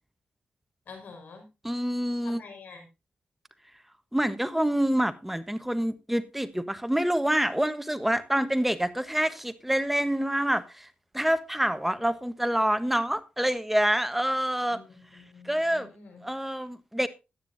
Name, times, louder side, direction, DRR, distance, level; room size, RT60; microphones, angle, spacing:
voice 1, 0.9-1.5 2.2-2.9 14.7-16.2, left 4 dB, 75° left, 5.1 m, -47 dB
voice 2, 1.6-2.4 4.1-10.9 11.1-14.8 15.4-15.9 16.2-17.1, right 1 dB, 5° right, 1.2 m, -27 dB
15.0 x 9.8 x 2.7 m
cardioid pair, 75°, 3 cm